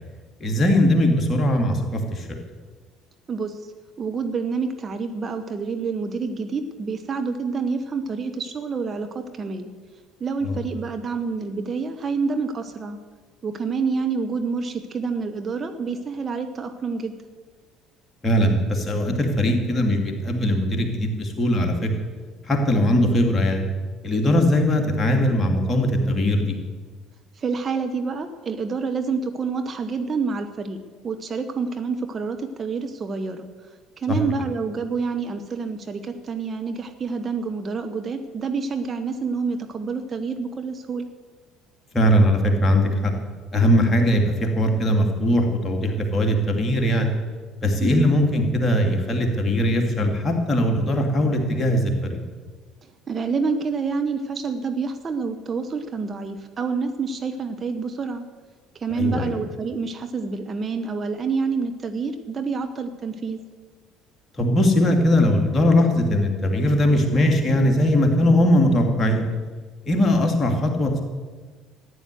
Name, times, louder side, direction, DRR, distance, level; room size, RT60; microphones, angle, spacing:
voice 1, 0.4-2.4 10.4-10.5 18.2-21.9 22.5-23.6 24.0-26.6 34.1-34.2 41.9-43.1 43.5-47.1 47.6-52.2 59.0-59.3 64.4-69.3 69.9-71.0, left 1 dB, 25° left, 2 dB, 2.8 m, -20 dB
voice 2, 3.3-3.6 4.0-9.7 10.2-13.0 13.4-17.2 27.3-30.8 31.0-33.5 34.0-41.1 47.8-48.1 53.1-58.2 58.7-63.4, right 4 dB, 30° right, 6 dB, 1.1 m, -28 dB
14.5 x 9.8 x 7.9 m, 1.4 s
figure-of-eight pair, 55°, 0 cm